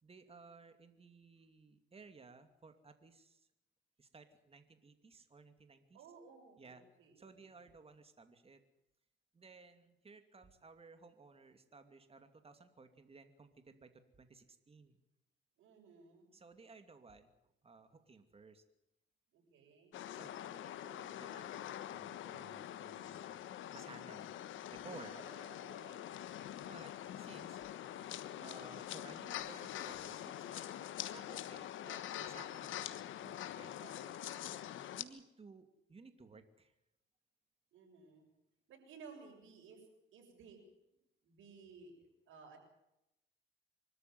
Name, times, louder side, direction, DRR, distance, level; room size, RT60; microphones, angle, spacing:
voice 1, 0.0-3.5 4.0-6.0 6.6-6.8 7.2-8.6 9.3-15.0 16.3-17.3 17.6-18.6 20.1-23.4 23.7-24.3 24.7-25.1 26.6-27.7 28.4-33.7 34.9-36.7, right 4 dB, 30° right, 8 dB, 2.6 m, -58 dB
voice 2, 5.9-7.3 15.6-16.3 19.3-20.0 25.0-26.3 33.7-34.4 37.7-38.3 38.7-39.8 40.1-40.6 41.2-41.9 42.3-42.6, right 5 dB, 80° right, 2 dB, 7.3 m, -57 dB
sound 1, 19.9-35.0, left 11 dB, 80° left, 1.4 m, -45 dB
25.0 x 14.0 x 9.4 m, 0.87 s
cardioid pair, 90°, 20 cm